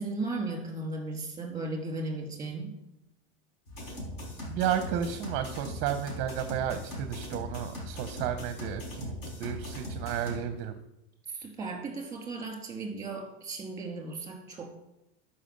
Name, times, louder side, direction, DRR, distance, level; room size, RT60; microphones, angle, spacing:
voice 1, 0.0-2.7 11.3-14.7, right 3 dB, 10° right, 2 dB, 2.4 m, -36 dB
sound 1, 3.7-10.4, left 1 dB, 50° left, 4.7 m, -39 dB
voice 2, 4.4-10.8, right 9 dB, 35° right, 9 dB, 0.7 m, -32 dB
13.0 x 5.7 x 6.6 m, 0.89 s
supercardioid pair, 165°, 33 cm